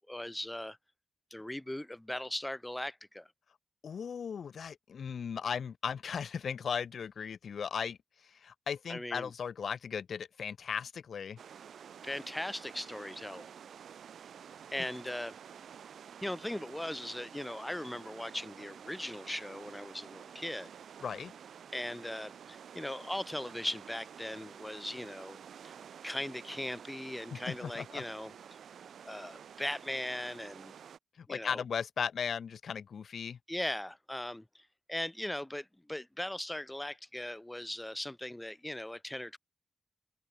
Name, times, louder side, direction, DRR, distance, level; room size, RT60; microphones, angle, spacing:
voice 1, 0.1-0.8 1.3-3.3 8.9-9.3 12.0-13.5 14.7-15.3 16.2-20.7 21.7-25.4 26.0-28.3 29.0-30.7 31.3-31.6 33.5-39.4, left 1 dB, 10° left, 0.7 m, -39 dB
voice 2, 3.8-8.0 8.4-11.4 21.0-21.3 27.3-28.0 31.2-33.4, left 7 dB, 70° left, 0.9 m, -37 dB
sound 1, 11.4-31.0, right 8 dB, 80° right, 4.4 m, -50 dB
supercardioid pair, 50°, 0 cm